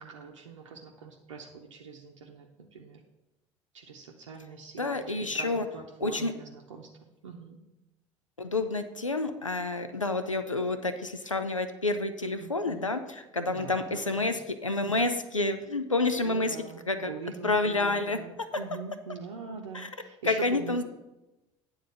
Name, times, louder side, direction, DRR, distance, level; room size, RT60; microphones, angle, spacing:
voice 1, 0.0-3.0 3.7-7.6 12.4-12.9 13.5-14.4 16.2-20.8, right 5 dB, 75° right, 0 dB, 0.7 m, -43 dB
voice 2, 4.8-5.7 6.0-6.3 8.4-16.6 16.9-17.1 17.4-18.2 19.7-19.9 20.2-20.8, left 2 dB, 90° left, 9 dB, 0.5 m, -29 dB
9.4 x 3.9 x 7.1 m, 0.99 s
figure-of-eight pair, 60°, 16 cm